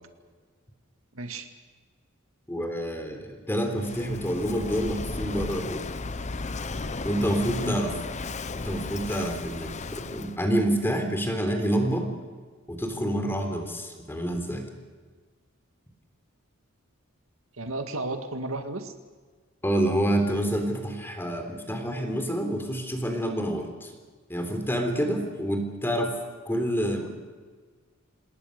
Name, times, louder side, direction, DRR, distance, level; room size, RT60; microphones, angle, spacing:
voice 1, 1.1-1.5 7.6-7.8 17.5-18.9, right 2 dB, 80° right, 7 dB, 2.0 m, -33 dB
voice 2, 2.5-5.9 7.0-7.9 8.6-12.1 12.7-14.6 19.6-23.9 24.3-26.1 26.5-27.1, equal, 10° left, 5 dB, 3.6 m, -28 dB
Walk footsteps / Wind / Waves surf, 3.8-10.4, left 3 dB, 35° left, 0.8 m, -34 dB
28.0 x 19.5 x 6.7 m, 1.5 s
head